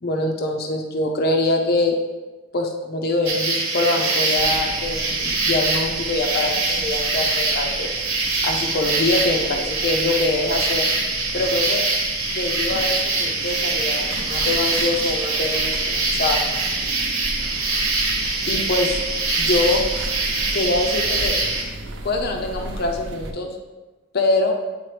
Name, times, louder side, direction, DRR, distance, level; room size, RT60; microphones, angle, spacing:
voice 1, 0.0-2.0 2.5-7.9 8.4-10.9 11.3-11.8 12.3-16.4 18.5-18.9 19.4-19.8 20.5-21.4 22.0-23.5 24.1-24.6, left 2 dB, 45° left, 2 dB, 0.5 m, -24 dB
sound 1, 3.3-21.6, right 3 dB, 75° right, 1.2 m, -23 dB
sound 2, 4.3-23.3, right 1 dB, 60° right, 0.7 m, -35 dB
8.8 x 3.7 x 3.2 m, 1.2 s
head